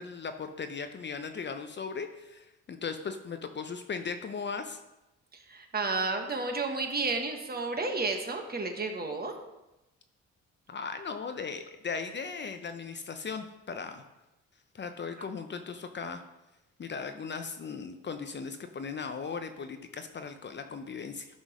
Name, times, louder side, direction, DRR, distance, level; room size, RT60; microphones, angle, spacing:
voice 1, 0.0-4.8 10.7-14.0 14.7-16.2 16.8-21.3, left 5 dB, 35° left, 8 dB, 0.7 m, -38 dB
voice 2, 5.5-9.3, right 3 dB, 30° right, 4 dB, 1.3 m, -31 dB
10.0 x 3.8 x 6.2 m, 0.98 s
cardioid pair, 90°, 30 cm